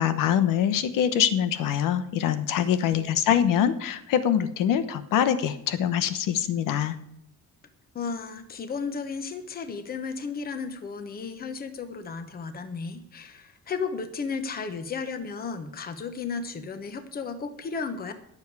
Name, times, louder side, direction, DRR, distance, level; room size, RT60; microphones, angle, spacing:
voice 1, 0.0-7.0, left 9 dB, 90° left, 11 dB, 1.1 m, -24 dB
voice 2, 2.5-3.0 7.9-18.1, left 5 dB, 30° left, 8 dB, 1.1 m, -34 dB
21.0 x 7.2 x 4.8 m, 0.73 s
cardioid pair, 175°, 32 cm